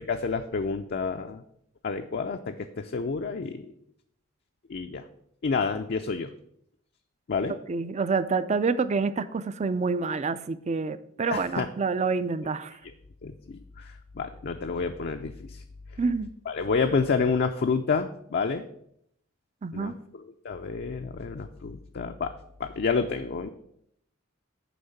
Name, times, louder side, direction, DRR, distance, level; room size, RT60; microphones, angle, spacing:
voice 1, 0.0-1.4 1.8-3.7 4.7-5.0 5.4-6.3 7.3-7.5 11.2-11.7 13.2-15.6 16.5-18.6 19.7-22.3 22.6-23.5, left 5 dB, 55° left, 5 dB, 0.5 m, -29 dB
voice 2, 7.7-12.7 16.0-16.3 19.6-19.9, right 4 dB, 35° right, 14 dB, 0.4 m, -27 dB
9.3 x 3.5 x 6.6 m, 0.72 s
head